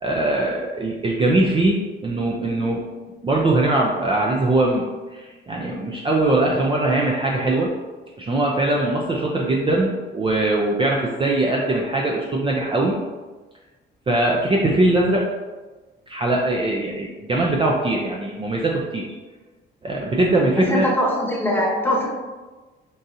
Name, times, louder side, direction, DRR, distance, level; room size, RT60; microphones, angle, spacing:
voice 1, 0.0-2.8 3.2-4.9 5.1-7.7 8.2-13.0 14.1-15.2 16.1-19.1 19.8-20.9, right 2 dB, 25° right, -2 dB, 0.5 m, -21 dB
voice 2, 20.5-22.1, left 1 dB, 10° left, -3 dB, 1.0 m, -22 dB
5.4 x 2.5 x 2.6 m, 1.3 s
cardioid pair, 90°, 20 cm